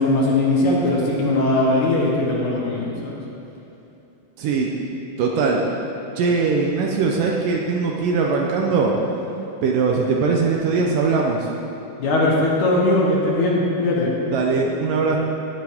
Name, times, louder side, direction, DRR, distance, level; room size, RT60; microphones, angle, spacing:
voice 1, 0.0-3.2 12.0-14.1, left 2 dB, 65° left, -3 dB, 2.3 m, -20 dB
voice 2, 4.4-4.7 5.2-5.6 6.2-8.9 9.6-11.5 14.3-15.2, right 4 dB, 75° right, 0 dB, 2.1 m, -21 dB
18.0 x 7.2 x 3.5 m, 2.9 s
omnidirectional pair, 4.4 m